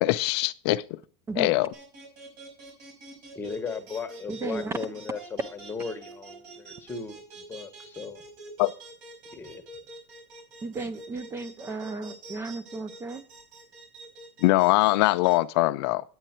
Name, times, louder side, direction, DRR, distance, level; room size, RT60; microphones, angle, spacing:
voice 1, 0.0-0.8 1.4-1.7 8.6-8.7 14.4-16.0, left 19 dB, 60° left, 0.4 m, -22 dB
sound 1, 1.7-15.3, right 2 dB, 70° right, 5.3 m, -46 dB
voice 2, 3.3-8.2 9.3-9.6, left 5 dB, 15° left, 1.0 m, -37 dB
voice 3, 4.3-4.7 10.6-13.2, right 3 dB, 15° right, 0.4 m, -34 dB
9.2 x 8.9 x 4.4 m
supercardioid pair, 155°, 15 cm